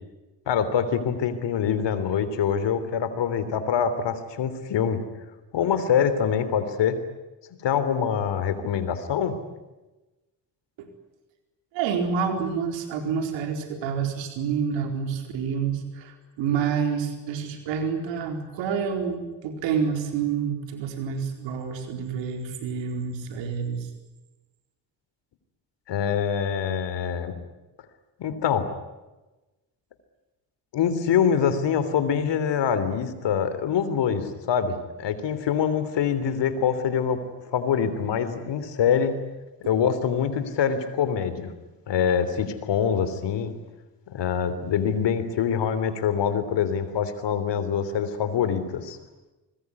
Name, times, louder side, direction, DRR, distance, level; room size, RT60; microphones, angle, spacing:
voice 1, 0.5-5.0 5.5-7.0 7.6-9.4 25.9-27.3 28.2-28.7 30.7-37.2 37.5-39.1 39.6-41.5 41.9-43.5 44.1-49.0, left 7 dB, 75° left, 12 dB, 3.4 m, -25 dB
voice 2, 11.7-23.9 39.6-39.7, right 6 dB, 90° right, 5 dB, 4.5 m, -28 dB
26.0 x 21.0 x 9.7 m, 1.1 s
supercardioid pair, 55°, 43 cm